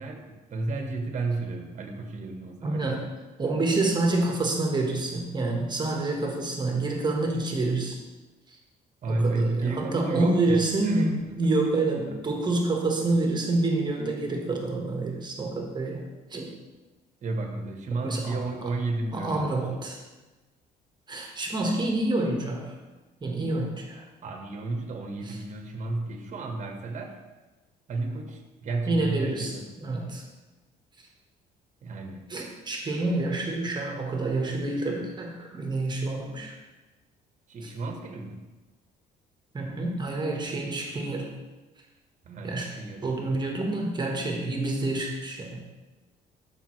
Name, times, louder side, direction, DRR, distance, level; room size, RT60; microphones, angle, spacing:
voice 1, 0.0-3.1 9.0-11.4 17.2-19.7 24.2-27.2 27.9-29.7 31.8-32.3 37.5-38.4 42.2-43.4, right 2 dB, 45° right, 3 dB, 1.2 m, -32 dB
voice 2, 2.6-3.1 3.4-8.0 8.5-8.6 9.1-11.1 11.3-16.6 18.0-18.4 19.1-20.0 21.1-22.7 23.2-24.0 28.9-30.2 32.3-36.5 39.5-41.3 42.4-42.7 43.0-45.6, right 2 dB, 25° right, 1 dB, 1.4 m, -28 dB
12.0 x 5.4 x 3.2 m, 1.2 s
cardioid pair, 110°, 17 cm